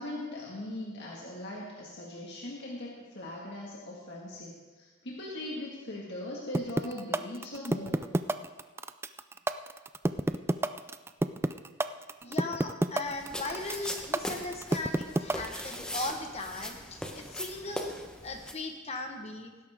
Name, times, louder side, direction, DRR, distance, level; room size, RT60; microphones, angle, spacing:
voice 1, 0.0-8.1, left 1 dB, 55° left, -3 dB, 1.8 m, -40 dB
sound 1, 6.5-15.8, right 2 dB, 10° right, 0.3 m, -28 dB
voice 2, 12.2-17.9 18.2-19.5, left 2 dB, 35° left, 4 dB, 1.2 m, -38 dB
sound 2, 13.1-18.5, left 1 dB, 5° left, 1.0 m, -40 dB
18.5 x 11.0 x 3.6 m, 1.3 s
head